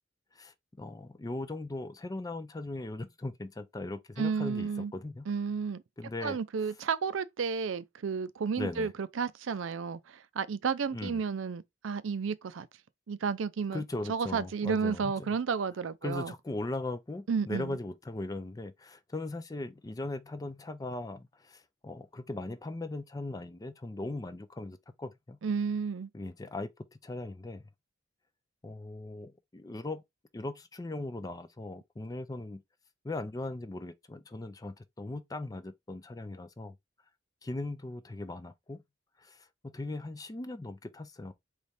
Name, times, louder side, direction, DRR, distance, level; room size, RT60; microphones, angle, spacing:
voice 1, 0.3-5.3 6.0-6.4 8.6-8.9 10.9-11.2 13.7-15.4 16.0-25.4 26.1-26.7 27.0-27.6 28.6-30.0 30.3-32.6 33.0-36.8 37.4-38.8 39.2-41.3, left 2 dB, 20° left, 0.4 m, -39 dB
voice 2, 4.2-4.9 5.3-5.8 6.2-12.7 13.1-13.8 14.1-16.3 17.3-17.8 25.4-26.1, right 5 dB, 80° right, 0.5 m, -32 dB
4.1 x 3.1 x 3.4 m
head